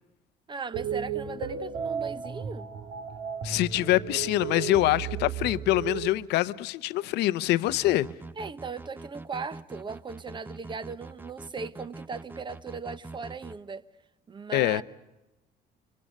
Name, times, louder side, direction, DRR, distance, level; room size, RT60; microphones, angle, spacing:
voice 1, 0.5-2.7 8.4-13.8 14.3-14.8, right 4 dB, 30° right, 1.1 m, -38 dB
sound 1, 0.7-6.1, right 7 dB, 75° right, 2.2 m, -34 dB
voice 2, 3.4-8.1 14.5-14.8, left 16 dB, 85° left, 0.9 m, -25 dB
sound 2, 7.7-13.6, right 3 dB, 10° right, 0.8 m, -44 dB
26.5 x 25.0 x 6.5 m
cardioid pair, 110°, 17 cm